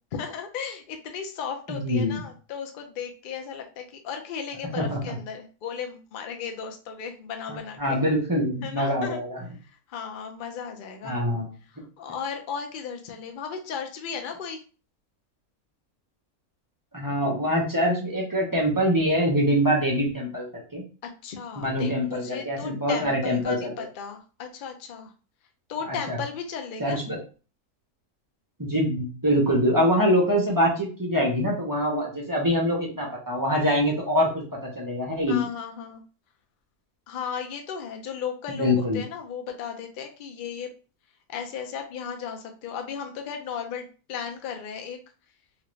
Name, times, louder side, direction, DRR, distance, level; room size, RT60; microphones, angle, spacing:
voice 1, 0.1-8.0 8.6-9.2 9.6-11.2 12.0-14.6 21.0-25.1 25.7-27.0 35.3-36.0 37.1-40.7 41.3-45.0, left 7 dB, 70° left, 4 dB, 0.4 m, -35 dB
voice 2, 1.7-2.2 4.7-5.2 7.5-9.4 11.0-11.5 16.9-20.8 21.6-23.9 26.1-26.2 26.8-27.2 28.6-34.4 34.8-35.5 38.5-39.0, equal, 25° right, -3 dB, 0.4 m, -24 dB
2.8 x 2.5 x 3.1 m, 0.36 s
omnidirectional pair, 1.6 m